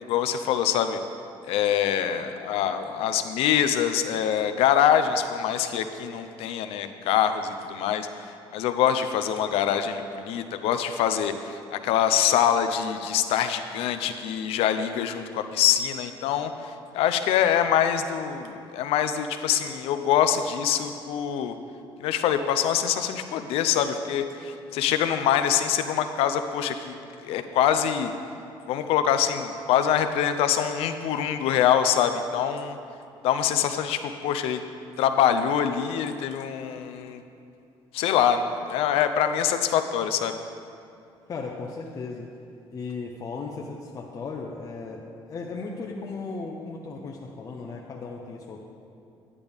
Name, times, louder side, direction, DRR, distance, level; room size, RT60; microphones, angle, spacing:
voice 1, 0.1-1.0 1.5-21.6 22.0-26.9 27.2-28.1 28.7-32.8 33.2-34.6 35.0-37.2 37.9-40.3, left 9 dB, 85° left, 9 dB, 0.6 m, -24 dB
voice 2, 41.3-42.3 42.7-48.6, left 4 dB, 35° left, -1 dB, 0.7 m, -36 dB
10.5 x 9.7 x 3.5 m, 2.6 s
cardioid pair, 145°, 10 cm